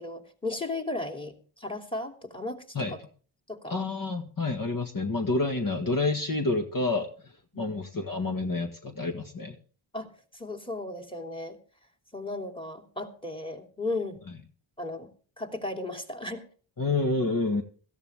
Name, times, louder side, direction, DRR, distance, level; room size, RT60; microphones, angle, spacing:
voice 1, 0.0-3.0 3.5-3.7 7.5-7.7 9.9-11.6 12.1-14.2 14.8-15.1 15.4-16.5, left 2 dB, 10° left, 6 dB, 2.9 m, -35 dB
voice 2, 3.7-7.1 7.6-9.5 16.8-17.6, left 3 dB, 40° left, 4 dB, 1.8 m, -28 dB
17.0 x 14.5 x 3.5 m, 0.41 s
cardioid pair, 60°, 50 cm